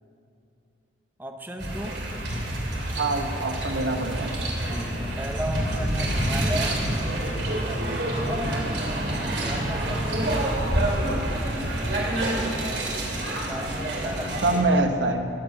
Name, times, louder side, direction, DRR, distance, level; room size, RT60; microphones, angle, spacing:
voice 1, 1.2-2.1 4.6-6.9 7.3-8.8 9.2-10.1 13.5-14.6 15.1-15.2, equal, 10° right, 3 dB, 0.9 m, -36 dB
sound 1, 1.6-14.6, right 1 dB, 65° right, 2.9 m, -27 dB
voice 2, 3.0-4.3 14.4-15.3, right 2 dB, 85° right, 5 dB, 1.2 m, -24 dB
16.0 x 8.0 x 8.4 m, 2.6 s
head